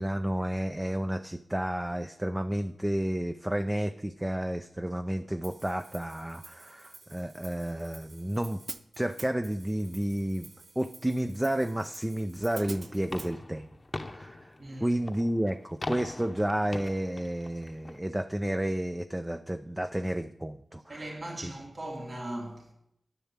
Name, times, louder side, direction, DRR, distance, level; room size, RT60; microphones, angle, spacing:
voice 1, 0.0-8.6 9.0-10.5 10.8-13.7 14.1-14.5 14.8-21.0, right 1 dB, 15° right, 0.5 m, -31 dB
Hi-hat, 5.4-13.3, right 4 dB, 70° right, 0.6 m, -49 dB
sound 1, 12.6-18.0, left 2 dB, 35° left, 0.8 m, -42 dB
voice 2, 14.6-15.0 20.9-22.7, right 1 dB, 50° right, 2.7 m, -39 dB
10.5 x 7.0 x 7.4 m
cardioid pair, 55°, 0 cm